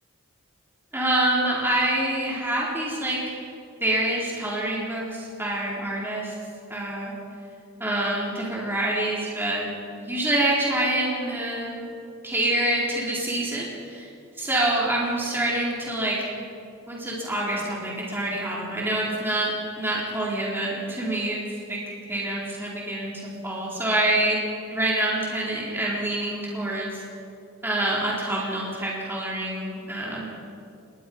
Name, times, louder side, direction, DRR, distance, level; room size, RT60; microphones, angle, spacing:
voice 1, 0.9-3.2 3.8-6.3 6.7-7.2 7.8-9.6 10.0-11.9 12.2-14.1 14.4-16.3 16.9-21.4 21.7-23.1 23.4-24.4 24.7-27.0 27.6-30.2, right 1 dB, 10° right, -5 dB, 4.0 m, -26 dB
29.5 x 21.0 x 5.5 m, 2.5 s
head